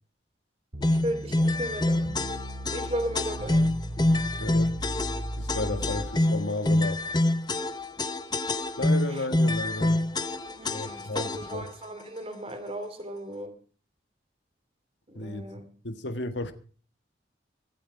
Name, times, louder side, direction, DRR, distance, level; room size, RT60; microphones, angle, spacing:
sound 1, 0.7-6.1, equal, 70° right, 2.6 m, -37 dB
sound 2, 0.8-11.7, left 1 dB, 25° left, 0.8 m, -26 dB
voice 1, 0.8-2.0 2.7-3.7 9.1-9.3 10.5-13.5 15.1-15.6, equal, 30° right, 2.6 m, -35 dB
voice 2, 4.4-4.7 5.4-7.0 8.8-10.0 10.7-11.7 15.1-15.5 15.8-16.5, left 2 dB, 85° left, 1.5 m, -33 dB
24.0 x 8.1 x 4.7 m
head